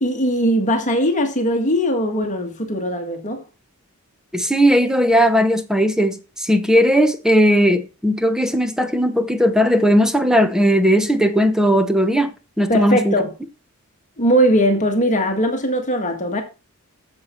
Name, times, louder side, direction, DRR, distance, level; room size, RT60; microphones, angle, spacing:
voice 1, 0.0-3.4 12.7-13.3 14.2-16.4, equal, 35° left, 1.7 m, -19 dB
voice 2, 4.3-13.1, equal, 5° right, 1.0 m, -17 dB
9.4 x 7.4 x 4.4 m
head